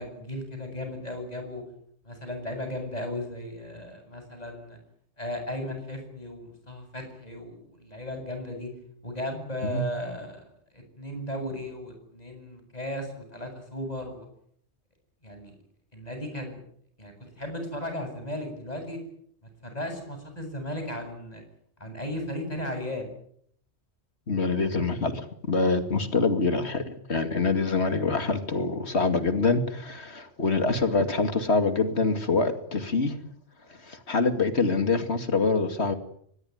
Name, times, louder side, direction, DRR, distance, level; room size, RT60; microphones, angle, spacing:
voice 1, 0.0-1.6 2.0-4.8 5.2-8.7 9.0-10.4 10.7-14.3 15.2-15.5 15.9-16.6 17.0-19.0 19.6-21.4 21.8-23.1, left 1 dB, 35° left, 8.3 m, -36 dB
voice 2, 24.3-33.2 33.8-35.9, left 3 dB, 75° left, 2.6 m, -25 dB
24.5 x 20.5 x 9.6 m
omnidirectional pair, 1.1 m